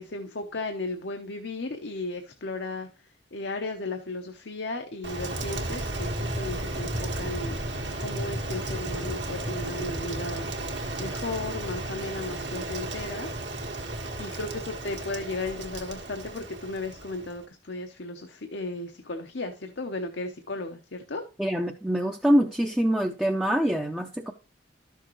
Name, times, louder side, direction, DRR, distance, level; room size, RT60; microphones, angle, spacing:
voice 1, 0.0-2.9 3.3-10.5 11.0-13.3 14.2-21.2, left 2 dB, 75° left, 5 dB, 0.9 m, -35 dB
Rain, 5.0-17.4, right 1 dB, 80° right, 1.7 m, -33 dB
voice 2, 21.4-24.3, equal, 5° right, 1 dB, 0.5 m, -24 dB
12.0 x 6.5 x 3.1 m, 0.30 s
head